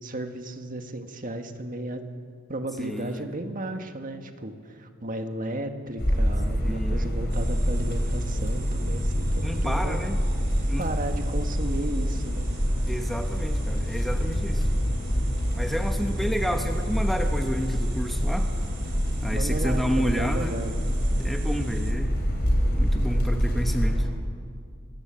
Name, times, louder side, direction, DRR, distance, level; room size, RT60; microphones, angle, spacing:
voice 1, 0.0-2.0 2.5-10.0 10.8-12.5 19.3-20.8, right 1 dB, 40° right, 6 dB, 1.6 m, -34 dB
voice 2, 2.8-3.3 6.6-7.1 9.4-10.2 10.7-10.9 12.9-14.7 15.5-18.5 19.2-20.5 21.2-22.1 22.8-24.1, equal, ahead, 4 dB, 1.1 m, -30 dB
sound 1, 6.0-24.0, equal, 55° left, 4.4 m, -26 dB
sound 2, 7.3-21.9, right 8 dB, 60° right, 3.4 m, -48 dB
25.0 x 14.5 x 8.8 m, 2.2 s
head